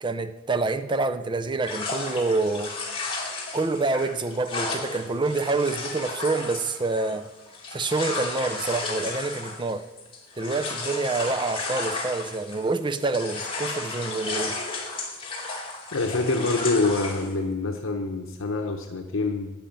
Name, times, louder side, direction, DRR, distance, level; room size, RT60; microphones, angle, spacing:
voice 1, 0.0-2.7 3.5-7.3 7.7-9.8 10.4-14.6, right 3 dB, 25° right, 9 dB, 0.6 m, -27 dB
sound 1, 1.6-12.7 13.0-17.3, left 3 dB, 25° left, 2.4 m, -33 dB
voice 2, 15.9-19.5, left 3 dB, 65° left, 4 dB, 0.9 m, -26 dB
11.0 x 7.0 x 8.8 m, 1.1 s
head